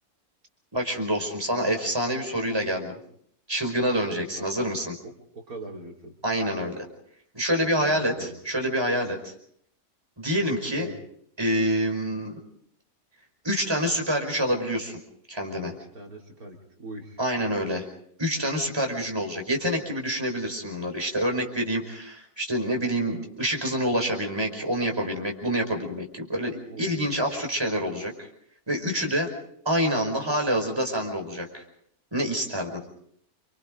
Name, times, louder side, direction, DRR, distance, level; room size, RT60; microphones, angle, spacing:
voice 1, 0.7-3.0 3.5-4.9 6.2-6.8 7.3-9.3 10.2-10.9 11.4-12.4 13.4-15.0 15.3-15.7 17.2-17.8 18.2-28.3 28.7-29.3 29.6-31.6 32.1-32.8, equal, 15° right, 2 dB, 5.1 m, -27 dB
voice 2, 4.1-4.7 5.3-6.1 7.8-8.4 10.7-10.9 15.9-17.2 26.7-27.2 32.7-32.8, right 2 dB, 75° right, -1 dB, 3.8 m, -41 dB
30.0 x 26.0 x 3.9 m, 0.65 s
omnidirectional pair, 1.6 m